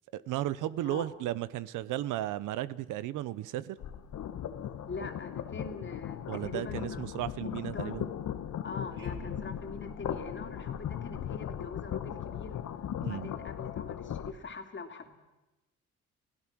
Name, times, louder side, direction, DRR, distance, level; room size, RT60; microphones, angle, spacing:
voice 1, 0.1-3.8 6.3-8.1 13.0-13.3, right 14 dB, 90° right, 0.8 m, -34 dB
sound 1, 3.8-14.3, left 10 dB, 70° left, 1.3 m, -38 dB
voice 2, 4.9-7.1 7.7-8.0 8.6-12.6 13.0-15.2, left 3 dB, 40° left, 3.0 m, -43 dB
sound 2, 8.9-13.0, right 2 dB, 40° right, 6.5 m, -51 dB
29.5 x 16.5 x 6.2 m
cardioid pair, 90°, 30 cm